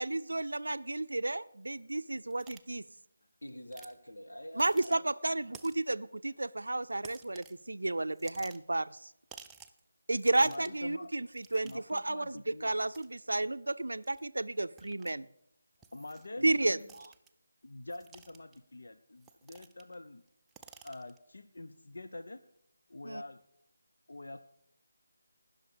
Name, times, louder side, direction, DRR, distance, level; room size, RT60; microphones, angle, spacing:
voice 1, 0.0-2.8 4.6-9.1 10.1-15.3 16.4-17.1 23.0-23.2, right 2 dB, 80° right, 13 dB, 0.4 m, -32 dB
sound 1, 2.3-2.6 3.7-3.9 4.5-4.9 5.5-5.9 7.0-7.6 8.1-8.8 9.3-9.8 10.1-10.8 11.3-12.0 12.9-13.1 14.0-14.2 14.8-15.1 15.8-16.3 16.8-17.3 17.9-18.6 19.2-19.9 20.3-21.2, right 6 dB, 5° right, 0.4 m, -53 dB
voice 2, 3.4-5.1 16.4-16.9, equal, 90° left, 5 dB, 1.9 m, -46 dB
voice 3, 10.4-11.1 11.6-12.8 15.9-16.4 17.6-20.2 20.8-22.4 22.9-23.4 24.1-24.4, left 2 dB, 70° left, 10 dB, 0.6 m, -46 dB
18.5 x 6.4 x 5.0 m, 0.74 s
figure-of-eight pair, 165°, 0 cm